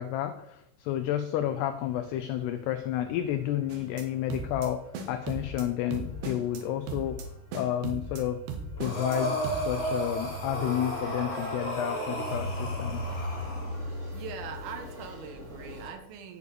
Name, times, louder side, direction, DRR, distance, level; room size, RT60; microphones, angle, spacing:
voice 1, 0.0-4.8 5.1-7.2 7.5-8.4 8.8-13.0, left 11 dB, 85° left, 9 dB, 2.3 m, -31 dB
sound 1, 1.6-15.9, equal, 15° right, 3.2 m, -40 dB
sound 2, 3.7-4.0 4.3-4.7 4.9-5.6 5.9-6.6 6.9-7.2 7.5-8.2 8.5-9.2 9.4-9.6, right 4 dB, 65° right, 3.9 m, -37 dB
Breathing, 8.8-13.8, right 1 dB, 25° left, 3.6 m, -34 dB
voice 2, 14.1-16.4, right 6 dB, 85° right, 6 dB, 4.4 m, -41 dB
16.0 x 8.4 x 6.8 m, 0.82 s
omnidirectional pair, 5.7 m